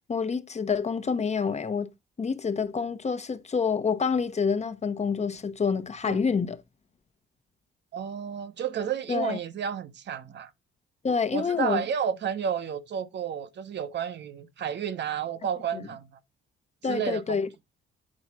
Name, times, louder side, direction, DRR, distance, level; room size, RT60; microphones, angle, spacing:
voice 1, 0.1-1.9 2.2-6.6 9.1-9.4 11.0-11.8 15.7-15.8 16.8-17.5, left 5 dB, 35° left, 1.0 m, -27 dB
voice 2, 7.9-10.5 11.3-16.1 16.9-17.4, right 8 dB, 60° right, 1.1 m, -31 dB
8.8 x 4.1 x 6.1 m
cardioid pair, 90°, 20 cm